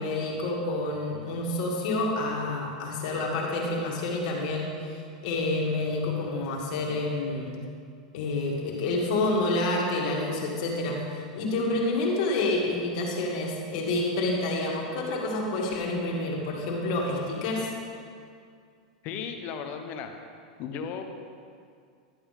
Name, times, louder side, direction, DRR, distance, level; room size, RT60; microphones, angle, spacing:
voice 1, 0.0-4.9 5.2-7.6 8.1-17.7, left 2 dB, 60° left, -2 dB, 2.3 m, -28 dB
voice 2, 19.0-20.1 20.6-21.0, left 6 dB, 45° left, 6 dB, 0.9 m, -35 dB
12.0 x 8.7 x 3.6 m, 2.3 s
supercardioid pair, 130°, 4 cm